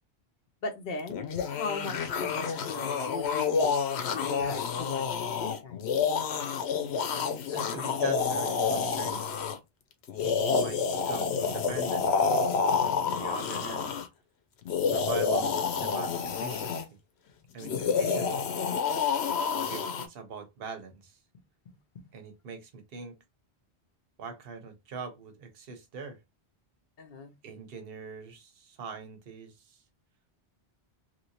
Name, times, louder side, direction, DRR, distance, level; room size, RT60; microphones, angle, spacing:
voice 1, 0.6-5.9 17.7-18.0 27.0-27.3, left 3 dB, 55° left, 0.7 m, -39 dB
sound 1, 1.1-9.6 10.1-14.1 14.6-16.8 17.6-20.1, left 5 dB, 85° left, 0.9 m, -29 dB
voice 2, 7.5-9.3 10.2-12.1 12.8-13.9 14.9-17.0 17.5-18.5 19.2-21.2 22.1-23.2 24.2-26.2 27.4-29.8, right 5 dB, 65° right, 1.0 m, -42 dB
3.0 x 2.8 x 2.8 m
omnidirectional pair, 1.1 m